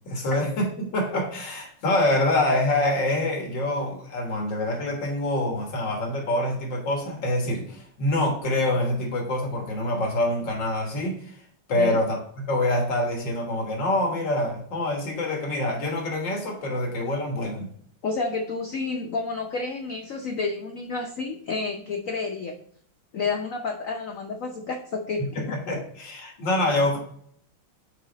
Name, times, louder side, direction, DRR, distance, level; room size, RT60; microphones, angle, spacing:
voice 1, 0.1-11.4 11.7-17.7 25.3-27.0, left 1 dB, 60° left, 2.1 m, -26 dB
voice 2, 18.0-22.5 23.1-25.4, left 4 dB, 85° left, 0.7 m, -30 dB
5.9 x 4.8 x 4.0 m
omnidirectional pair, 2.3 m